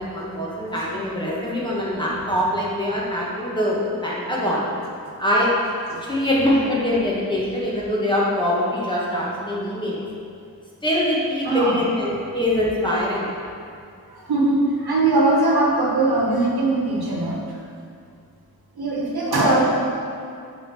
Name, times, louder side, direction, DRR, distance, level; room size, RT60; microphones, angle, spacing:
voice 1, 0.0-4.7 5.2-5.5 6.1-10.0 10.8-13.3, left 1 dB, 10° left, -6 dB, 1.8 m, -23 dB
voice 2, 11.4-11.8 12.9-13.0 14.1-17.4 18.8-19.6, right 2 dB, 80° right, -3 dB, 1.4 m, -21 dB
7.4 x 3.9 x 6.1 m, 2.4 s
wide cardioid pair, 70°, 37 cm